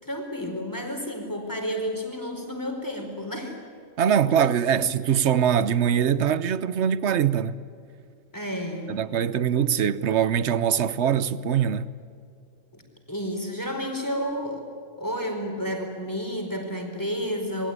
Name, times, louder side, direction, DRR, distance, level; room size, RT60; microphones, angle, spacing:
voice 1, 0.0-3.6 4.2-4.3 4.7-4.8 8.3-9.0 12.7-12.8 13.1-14.7 15.0-17.7, equal, 15° left, 4.5 m, -31 dB
voice 2, 4.0-7.6 8.9-11.9, right 8 dB, 65° right, 1.1 m, -23 dB
27.5 x 21.5 x 9.7 m
omnidirectional pair, 1.3 m